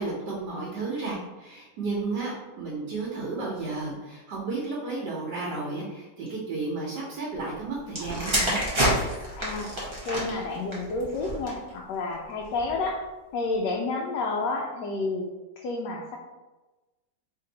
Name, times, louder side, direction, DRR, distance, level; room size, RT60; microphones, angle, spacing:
voice 1, 0.0-8.6, right 3 dB, 90° right, -5 dB, 1.5 m, -33 dB
sound 1, 7.9-11.7 12.5-12.8, equal, 20° right, 0.8 m, -28 dB
voice 2, 9.4-9.7 10.1-13.0 13.3-15.3 15.6-16.2, left 3 dB, 90° left, -1 dB, 1.2 m, -30 dB
3.5 x 2.6 x 4.1 m, 1.1 s
omnidirectional pair, 1.8 m